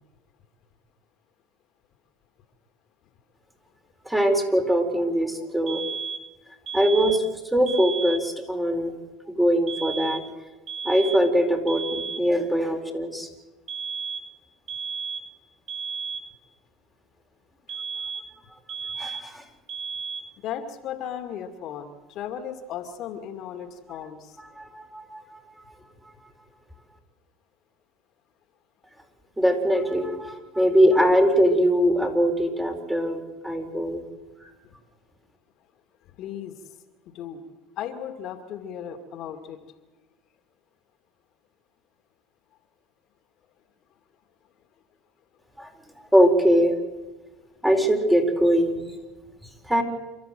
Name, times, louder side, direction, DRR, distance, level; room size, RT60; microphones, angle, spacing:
voice 1, 4.0-5.8 6.7-7.2 7.5-8.9 9.3-10.2 10.8-13.3 19.0-19.4 24.6-25.4 29.4-34.0 34.4-34.5 45.6-45.7 46.1-46.8 47.6-48.8 49.6-49.8, equal, 5° right, 4.3 m, -22 dB
sound 1, 5.7-6.3 6.7-7.3 7.7-8.3 9.7-10.3 10.7-11.3 11.7-12.3 13.7-14.3 14.7-15.3 15.7-16.3 17.7-18.4 18.7-19.4 19.7-20.4, right 5 dB, 40° right, 2.0 m, -34 dB
voice 2, 20.4-24.4 30.2-30.3 34.6-34.7 36.0-36.8 37.1-37.4 37.8-39.6, left 9 dB, 55° left, 2.5 m, -36 dB
28.5 x 13.0 x 7.9 m
supercardioid pair, 100°, 0 cm